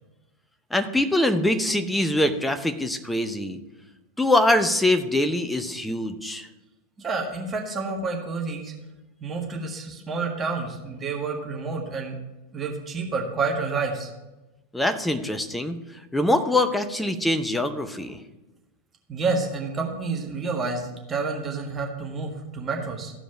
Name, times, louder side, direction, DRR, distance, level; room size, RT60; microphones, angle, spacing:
voice 1, 0.7-3.6 4.2-6.5 14.7-15.8 16.1-18.2, left 1 dB, 5° left, 7 dB, 0.7 m, -23 dB
voice 2, 7.0-8.7 9.2-12.1 12.5-14.1 19.1-23.1, right 4 dB, 20° right, 0 dB, 1.7 m, -29 dB
14.0 x 5.1 x 5.9 m, 1.0 s
figure-of-eight pair, 90°, 0 cm